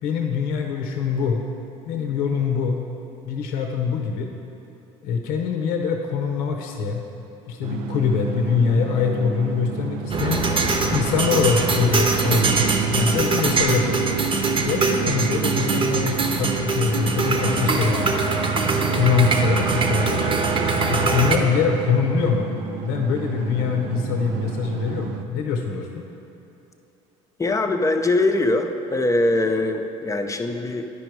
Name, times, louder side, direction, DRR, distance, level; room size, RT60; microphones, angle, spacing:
voice 1, 0.0-1.4 1.9-2.8 3.3-4.3 5.0-7.0 7.5-10.4 10.9-14.1 14.7-18.3 18.9-20.3 20.9-22.5 22.8-26.0, left 6 dB, 75° left, 3 dB, 0.7 m, -23 dB
sound 1, 7.6-25.3, right 9 dB, 75° right, 0.4 m, -30 dB
sound 2, 10.1-21.4, right 3 dB, 35° right, 0.9 m, -23 dB
voice 2, 27.4-30.9, left 2 dB, 20° left, 6 dB, 0.7 m, -22 dB
10.0 x 5.0 x 4.7 m, 3.0 s
hypercardioid pair, 65°, 15 cm